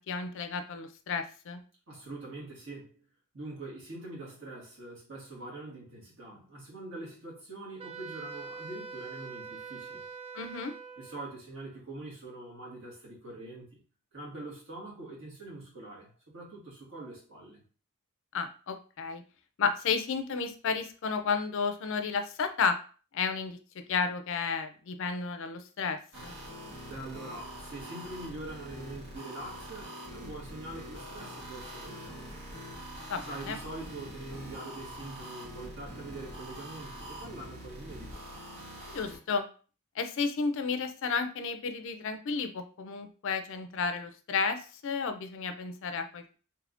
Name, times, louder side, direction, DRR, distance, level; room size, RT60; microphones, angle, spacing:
voice 1, 0.1-1.6 10.3-10.7 18.3-19.2 19.6-22.8 23.1-23.6 23.9-26.3 33.1-33.6 38.9-39.5 40.0-46.3, left 5 dB, 60° left, 0.4 m, -32 dB
voice 2, 1.9-3.0 3.3-10.0 11.0-13.8 14.1-17.6 26.8-32.4 33.2-38.2, right 2 dB, 55° right, 1.6 m, -44 dB
Wind instrument woodwind instrument, 7.8-11.3, right 5 dB, 25° right, 0.3 m, -43 dB
sound 1, 26.1-39.2, equal, 75° right, 1.5 m, -44 dB
3.4 x 3.1 x 2.5 m
head